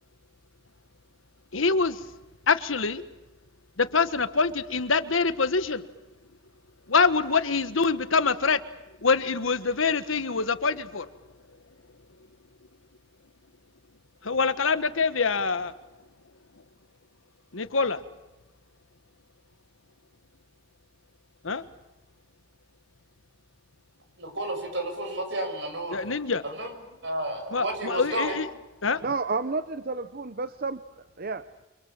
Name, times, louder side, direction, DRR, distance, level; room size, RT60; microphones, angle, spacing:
voice 1, 1.5-2.0 2.5-3.0 3.8-5.8 6.9-8.6 9.0-11.1 14.2-15.7 17.5-18.0 21.4-21.6 25.9-26.4 27.5-28.5 28.8-29.0, left 4 dB, 85° left, 12 dB, 1.4 m, -25 dB
voice 2, 24.2-26.0 26.4-26.7 27.0-28.4, right 1 dB, 65° right, 6 dB, 6.7 m, -31 dB
voice 3, 29.0-30.8 31.2-31.4, right 4 dB, 50° right, 13 dB, 0.8 m, -30 dB
29.5 x 24.5 x 7.4 m, 1.0 s
head